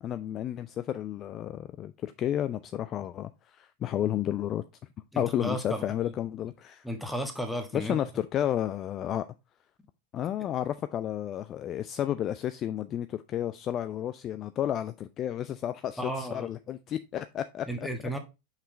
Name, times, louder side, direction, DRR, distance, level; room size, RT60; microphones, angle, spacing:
voice 1, 0.0-4.6 5.2-6.8 7.7-9.2 10.1-17.9, left 11 dB, 30° left, 0.4 m, -32 dB
voice 2, 5.1-5.8 6.8-8.0 16.0-16.5 17.7-18.2, equal, ahead, 1.5 m, -33 dB
6.7 x 5.6 x 3.1 m
figure-of-eight pair, 90°, 0 cm